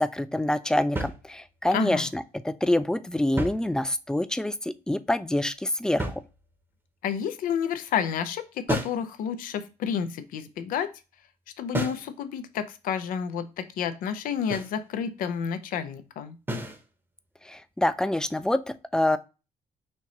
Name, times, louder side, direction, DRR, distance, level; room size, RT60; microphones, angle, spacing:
voice 1, 0.0-6.1 17.5-19.2, left 1 dB, 5° left, 13 dB, 0.4 m, -26 dB
sound 1, 1.0-1.7 3.2-4.2 6.0-6.8 8.7-9.1 11.7-12.1 14.5-14.8 16.5-16.9, right 1 dB, 15° right, 0.9 m, -33 dB
voice 2, 1.7-2.1 7.0-10.9 11.6-16.4, left 8 dB, 75° left, 11 dB, 0.6 m, -30 dB
4.5 x 2.8 x 2.9 m, 0.30 s
cardioid pair, 80°, 14 cm